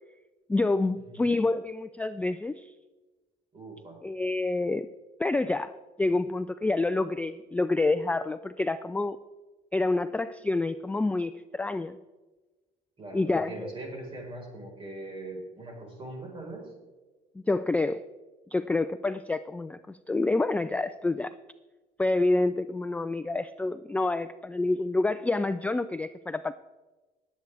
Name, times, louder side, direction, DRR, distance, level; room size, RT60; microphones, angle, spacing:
voice 1, 0.5-2.7 4.0-4.9 5.2-5.7 6.0-9.2 9.7-12.0 13.1-13.7 17.5-18.0 18.5-21.3 22.0-26.5, left 2 dB, 10° left, 12 dB, 0.3 m, -28 dB
voice 2, 3.5-4.0 13.0-16.7, right 2 dB, 30° right, 0 dB, 4.3 m, -41 dB
19.5 x 8.3 x 3.4 m, 1.2 s
cardioid pair, 110°, 17 cm